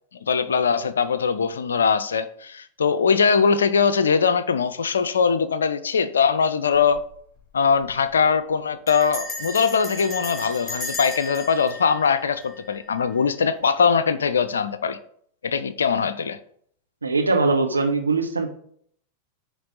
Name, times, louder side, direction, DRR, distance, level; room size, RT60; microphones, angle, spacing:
voice 1, 0.2-7.0 7.5-15.0 15.4-16.4, left 6 dB, 70° left, 0.6 m, -21 dB
Bell, 6.7-7.1 7.4-7.5 7.7-8.1 8.9-13.0, left 2 dB, 25° left, 3.8 m, -35 dB
voice 2, 17.0-18.5, right 3 dB, 80° right, 1.2 m, -21 dB
9.5 x 3.3 x 6.4 m
figure-of-eight pair, 90°, 0 cm